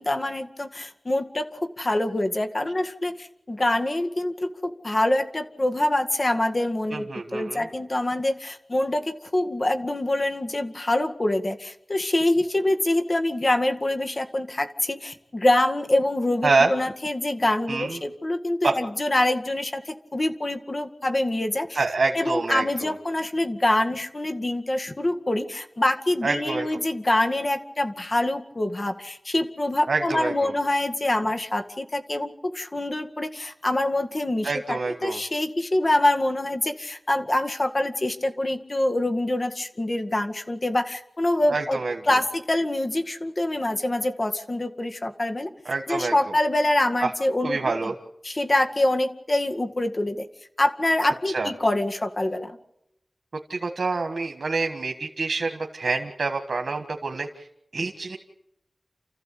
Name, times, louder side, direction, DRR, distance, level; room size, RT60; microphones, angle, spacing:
voice 1, 0.0-9.0 9.3-21.8 22.1-41.8 42.1-45.5 45.9-47.7 48.2-50.2 50.6-52.5, left 1 dB, 45° left, 6 dB, 2.0 m, -25 dB
voice 2, 6.9-7.7 16.4-16.7 17.7-18.0 18.6-18.7 21.7-22.9 26.2-26.8 29.9-30.5 34.4-35.2 41.5-42.2 45.6-46.1 47.0-47.1 47.4-47.9 51.3-51.5 53.5-57.5 57.7-58.2, right 3 dB, 85° right, 4 dB, 1.6 m, -26 dB
29.0 x 14.5 x 8.5 m, 0.84 s
wide cardioid pair, 65°, 0 cm